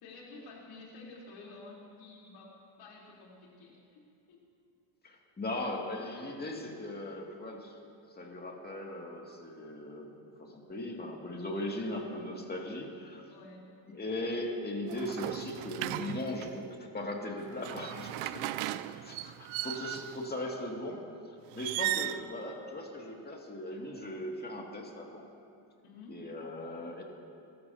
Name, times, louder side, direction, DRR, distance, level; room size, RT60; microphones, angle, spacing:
voice 1, 0.0-4.4 11.6-11.7 13.3-13.7 18.3-19.1 21.7-22.0 25.8-26.3, left 2 dB, 80° left, -4 dB, 3.7 m, -51 dB
voice 2, 5.0-7.7 8.2-13.2 13.9-18.3 18.6-18.8 19.1-21.0 21.5-25.2 26.1-27.0, left 1 dB, 20° left, 0 dB, 2.3 m, -38 dB
sound 1, 14.9-16.6 17.4-20.2 21.5-22.2, right 15 dB, 75° right, 0.5 m, -36 dB
21.0 x 13.5 x 2.8 m, 2.5 s
cardioid pair, 100°, 47 cm